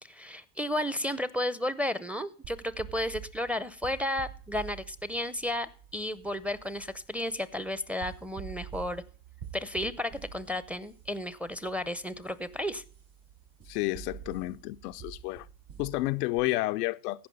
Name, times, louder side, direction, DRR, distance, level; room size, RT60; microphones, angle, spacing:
voice 1, 0.0-9.0 9.5-12.8, left 1 dB, 5° right, 0.6 m, -33 dB
sound 1, 2.4-16.4, right 9 dB, 90° right, 5.6 m, -48 dB
voice 2, 13.7-15.5 15.8-17.3, left 19 dB, 90° left, 0.6 m, -31 dB
15.5 x 5.3 x 5.3 m
supercardioid pair, 85°, 45 cm